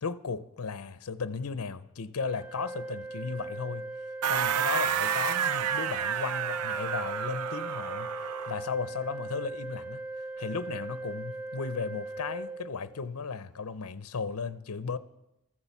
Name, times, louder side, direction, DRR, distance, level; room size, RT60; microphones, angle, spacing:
voice 1, 0.0-3.9 4.2-15.0, left 5 dB, 75° left, 0.7 m, -35 dB
Organ, 2.2-13.2, right 2 dB, 5° right, 1.3 m, -39 dB
sound 1, 4.2-8.6, right 8 dB, 80° right, 0.5 m, -30 dB
14.5 x 13.5 x 7.1 m
head